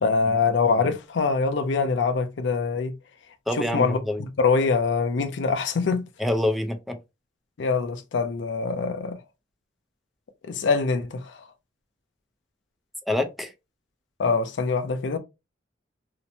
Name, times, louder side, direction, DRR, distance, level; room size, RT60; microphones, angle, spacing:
voice 1, 0.0-2.9 3.5-6.0 7.6-9.2 10.4-11.2 14.2-15.2, left 4 dB, 75° left, 0.5 m, -24 dB
voice 2, 3.5-4.2 6.2-7.0 13.1-13.5, left 1 dB, ahead, 0.4 m, -26 dB
2.9 x 2.1 x 2.6 m
head